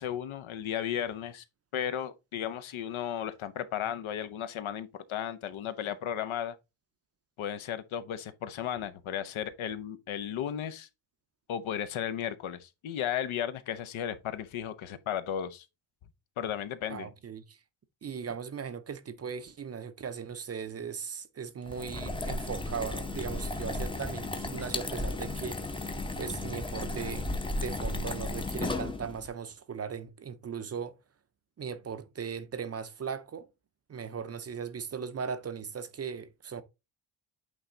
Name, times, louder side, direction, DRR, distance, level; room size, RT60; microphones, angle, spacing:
voice 1, 0.0-1.4 1.7-6.6 7.4-10.9 11.5-15.6 16.4-17.1, left 9 dB, 85° left, 0.9 m, -34 dB
voice 2, 16.9-17.6 18.0-25.9 26.2-27.3 27.5-31.0 31.6-33.5 33.9-36.6, right 6 dB, 35° right, 0.5 m, -38 dB
sound 1, 21.6-29.3, left 2 dB, 10° left, 0.6 m, -34 dB
8.6 x 3.3 x 3.8 m
wide cardioid pair, 170°, 47 cm